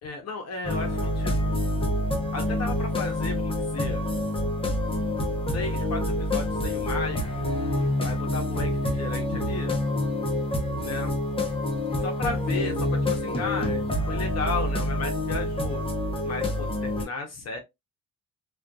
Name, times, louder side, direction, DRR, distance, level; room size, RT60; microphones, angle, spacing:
voice 1, 0.0-1.5 2.3-4.1 5.5-7.5 8.0-9.8 10.8-11.1 11.9-15.8 16.2-17.6, left 4 dB, 55° left, 0.8 m, -34 dB
sound 1, 0.6-17.1, left 1 dB, 20° left, 0.7 m, -27 dB
2.5 x 2.4 x 2.2 m
cardioid pair, 90°, 30 cm